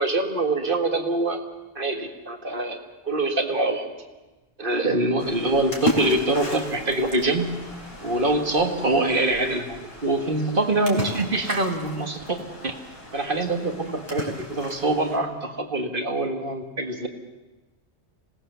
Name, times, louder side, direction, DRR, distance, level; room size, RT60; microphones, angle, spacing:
voice 1, 0.0-1.4 1.8-2.8 3.0-3.9 4.6-7.6 8.0-12.7 13.1-17.1, right 2 dB, 50° right, 5 dB, 2.1 m, -24 dB
Splash splatter, 5.2-15.2, equal, 60° left, 4.1 m, -34 dB
26.0 x 18.5 x 6.9 m, 1.1 s
omnidirectional pair, 1.2 m